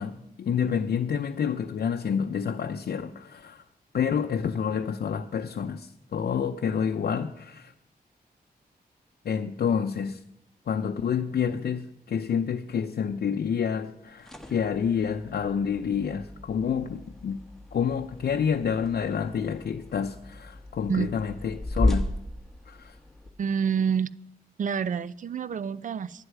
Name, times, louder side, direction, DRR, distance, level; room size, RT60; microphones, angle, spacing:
voice 1, 0.0-3.6 3.9-7.7 9.2-10.2 10.7-17.4 17.7-22.1 22.7-22.9, left 7 dB, 75° left, 0.6 m, -28 dB
sound 1, 14.2-23.3, left 1 dB, 5° left, 1.2 m, -34 dB
voice 2, 23.4-24.1 24.6-26.2, right 7 dB, 50° right, 0.5 m, -28 dB
11.0 x 8.0 x 9.8 m
wide cardioid pair, 155°, 16 cm